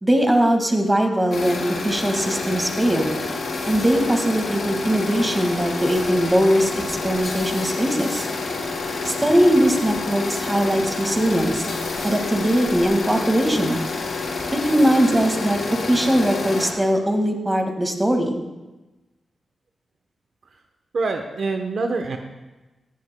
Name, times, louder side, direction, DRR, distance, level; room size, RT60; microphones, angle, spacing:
voice 1, 0.0-3.1 3.7-8.3 9.0-11.7 12.0-13.8 14.5-15.6 15.9-18.4, equal, 15° right, 4 dB, 1.9 m, -20 dB
sound 1, 1.3-16.7, left 3 dB, 75° left, 4.0 m, -28 dB
voice 2, 20.9-22.2, right 3 dB, 65° right, 4 dB, 0.9 m, -25 dB
18.0 x 14.5 x 2.2 m, 1.1 s
cardioid pair, 85°, 0 cm